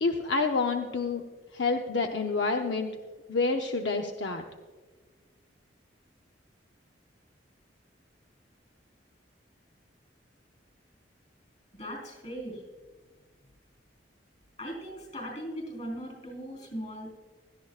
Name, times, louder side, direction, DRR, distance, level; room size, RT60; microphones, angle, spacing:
voice 1, 0.0-1.2 1.5-2.9 3.3-4.4, left 3 dB, 75° left, 4 dB, 0.7 m, -28 dB
voice 2, 11.7-12.6 14.6-17.1, equal, 40° left, 2 dB, 4.1 m, -39 dB
17.0 x 13.0 x 2.4 m, 1.4 s
head